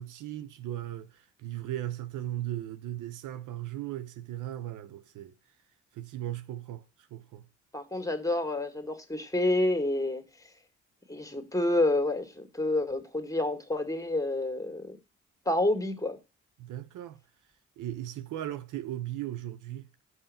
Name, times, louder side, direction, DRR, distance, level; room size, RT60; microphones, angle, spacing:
voice 1, 0.0-5.3 5.9-6.8 7.1-7.5 16.6-17.2 17.8-19.9, right 13 dB, 70° right, 0.7 m, -37 dB
voice 2, 7.7-10.2 11.1-15.0 15.5-16.2, left 2 dB, 10° left, 2.0 m, -28 dB
6.4 x 5.5 x 6.9 m
hypercardioid pair, 50°, 32 cm